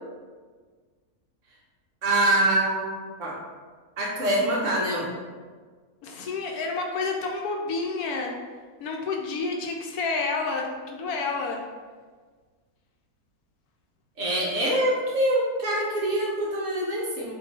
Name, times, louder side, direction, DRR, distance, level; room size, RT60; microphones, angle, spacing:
voice 1, 2.0-2.9 3.2-3.4 4.0-5.1 14.2-17.3, right 1 dB, 60° right, -3 dB, 1.0 m, -24 dB
voice 2, 6.0-8.3 8.8-11.6, left 4 dB, 75° left, 1 dB, 1.0 m, -29 dB
3.7 x 2.6 x 4.1 m, 1.5 s
omnidirectional pair, 1.7 m